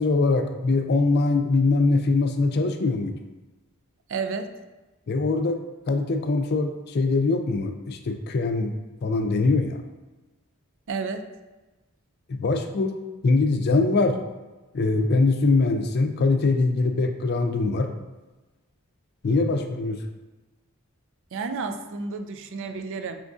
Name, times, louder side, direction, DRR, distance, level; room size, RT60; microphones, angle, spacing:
voice 1, 0.0-3.1 5.1-5.6 5.9-8.7 9.0-9.8 12.3-13.0 13.2-14.2 14.7-17.9 19.2-20.0, left 3 dB, 50° left, 6 dB, 0.4 m, -22 dB
voice 2, 4.1-4.5 10.9-11.2 21.3-23.2, right 4 dB, 60° right, 7 dB, 0.4 m, -31 dB
5.0 x 3.5 x 2.6 m, 1.1 s
head